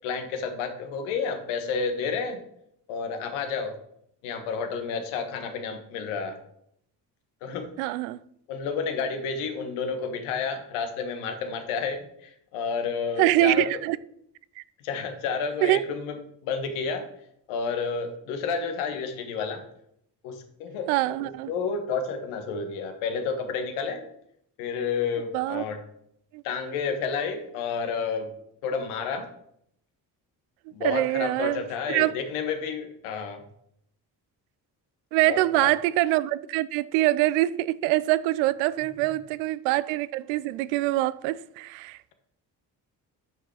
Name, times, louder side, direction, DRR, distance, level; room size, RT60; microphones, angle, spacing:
voice 1, 0.0-2.4 2.9-3.7 4.2-6.4 7.4-7.9 8.5-13.7 14.8-16.2 16.4-17.0 17.5-19.6 20.2-24.0 24.6-25.8 26.4-28.3 28.6-29.3 30.7-33.4 35.3-35.7, left 5 dB, 75° left, 1.5 m, -30 dB
voice 2, 7.8-8.2 13.2-14.0 15.6-15.8 20.9-21.5 25.3-25.6 26.3-26.4 30.8-31.6 31.9-32.1 35.1-42.1, right 16 dB, 75° right, 0.6 m, -24 dB
9.6 x 6.0 x 4.9 m
hypercardioid pair, 50°, 49 cm